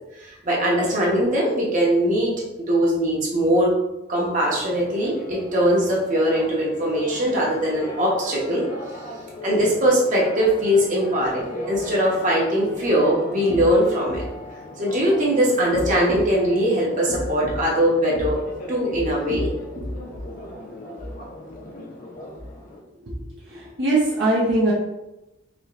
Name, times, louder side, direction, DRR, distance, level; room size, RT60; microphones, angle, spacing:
voice 1, 0.4-3.7 4.1-8.7 9.4-14.2 14.8-18.4 18.7-19.5 19.8-19.9, equal, 40° right, -4 dB, 1.1 m, -21 dB
Church bell, 4.5-22.8, left 1 dB, 45° left, 0.7 m, -37 dB
voice 2, 23.5-24.7, right 2 dB, 60° right, -7 dB, 0.9 m, -21 dB
4.9 x 2.9 x 2.5 m, 0.96 s
head